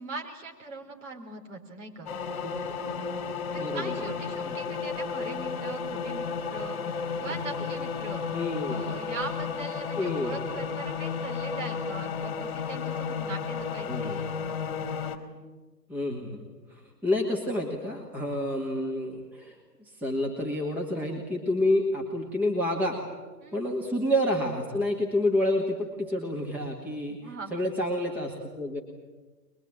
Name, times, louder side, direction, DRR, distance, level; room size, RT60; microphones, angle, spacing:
voice 1, 0.0-2.1 3.5-8.2 8.6-14.3 23.4-23.6 27.1-27.5, right 3 dB, 45° right, 3 dB, 4.4 m, -41 dB
sound 1, 2.1-15.2, left 5 dB, 35° left, 2.6 m, -33 dB
voice 2, 3.6-4.1 4.4-4.5 8.3-8.9 10.0-10.4 13.9-14.3 15.9-23.0 23.5-28.8, left 1 dB, 5° right, -1 dB, 2.0 m, -29 dB
23.5 x 22.5 x 8.9 m, 1.3 s
figure-of-eight pair, 140°, 49 cm